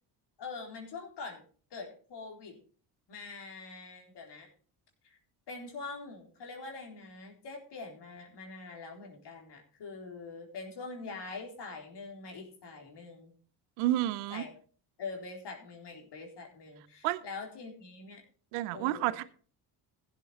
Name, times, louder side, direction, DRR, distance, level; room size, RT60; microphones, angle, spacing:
voice 1, 0.4-1.4 1.7-2.6 3.1-4.5 5.0-5.2 5.5-13.4 14.3-14.5 15.0-18.2 18.7-19.2, left 4 dB, 55° left, 4.0 m, -44 dB
voice 2, 13.8-14.4 17.0-17.2 18.5-19.2, right 15 dB, 80° right, 0.8 m, -30 dB
15.0 x 7.9 x 4.2 m
hypercardioid pair, 60°, 49 cm